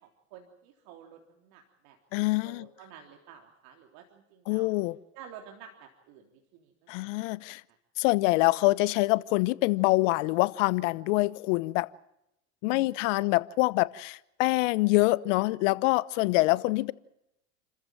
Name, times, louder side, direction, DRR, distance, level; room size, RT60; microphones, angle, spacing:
voice 1, 0.0-4.7 5.1-6.7 7.0-7.1 12.6-13.4, right 8 dB, 60° right, 3.6 m, -51 dB
voice 2, 2.1-2.7 4.5-5.0 6.9-7.6 8.0-11.9 12.6-16.9, left 21 dB, 65° left, 1.0 m, -25 dB
29.5 x 14.5 x 9.0 m
hypercardioid pair, 105°, 40 cm